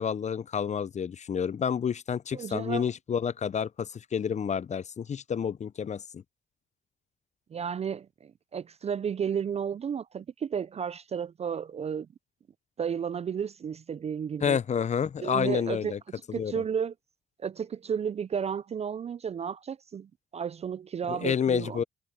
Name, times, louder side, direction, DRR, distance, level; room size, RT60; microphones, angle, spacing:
voice 1, 0.0-6.2 14.4-16.0 16.4-16.5 21.1-21.8, left 7 dB, 35° left, 0.5 m, -29 dB
voice 2, 2.3-2.9 7.5-12.1 12.8-14.6 15.2-15.9 16.3-16.9 17.4-21.8, right 7 dB, 35° right, 0.3 m, -33 dB
cardioid pair, 90°, 20 cm